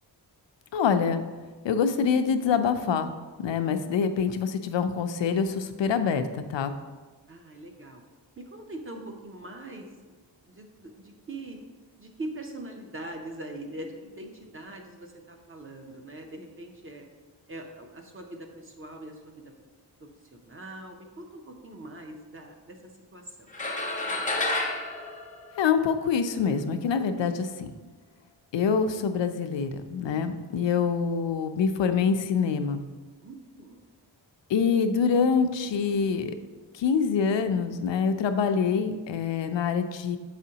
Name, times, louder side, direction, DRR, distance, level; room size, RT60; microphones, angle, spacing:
voice 1, 0.7-1.2 1.6-3.1 3.4-6.7 25.6-27.7 28.5-32.9 34.5-36.3 36.7-40.2, left 6 dB, 90° left, 8 dB, 0.5 m, -25 dB
voice 2, 7.3-8.0 8.4-10.2 10.5-11.6 12.0-17.1 17.5-19.5 20.0-22.8 23.1-23.5 33.2-33.8, right 1 dB, 30° right, 3 dB, 0.5 m, -42 dB
sound 1, 23.5-26.1, left 2 dB, 20° left, 0.5 m, -30 dB
6.8 x 4.9 x 2.8 m, 1.3 s
wide cardioid pair, 175°, 43 cm